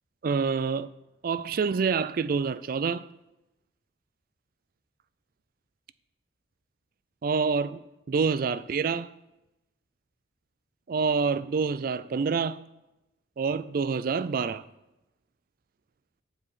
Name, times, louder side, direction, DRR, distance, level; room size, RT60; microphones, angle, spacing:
voice 1, 0.2-0.9 1.2-3.0 7.2-7.8 8.1-9.1 10.9-12.6 13.4-14.6, right 5 dB, 45° right, 0.3 m, -27 dB
10.5 x 4.8 x 7.3 m
head